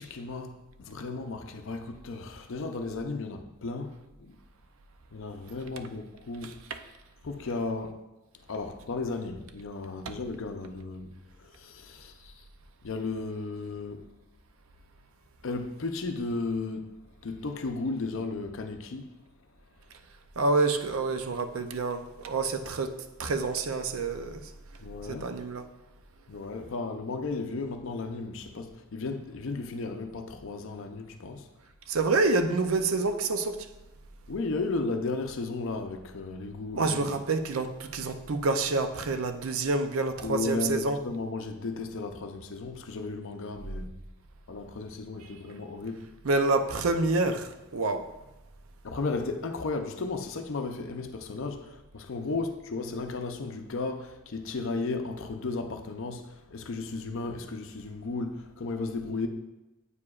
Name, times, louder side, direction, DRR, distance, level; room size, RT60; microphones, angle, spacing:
voice 1, 0.0-4.3 5.1-6.5 7.2-8.0 8.5-11.1 11.4-12.4 12.8-14.1 15.4-16.9 17.2-19.2 24.8-25.4 26.3-31.5 34.3-37.2 40.2-43.9 44.5-46.0 48.8-59.3, left 3 dB, 60° left, 0.5 m, -34 dB
voice 2, 20.4-22.9 23.2-24.4 25.1-25.6 31.9-33.6 36.8-41.0 46.2-48.0, right 3 dB, 65° right, 0.5 m, -27 dB
8.4 x 4.8 x 2.4 m
head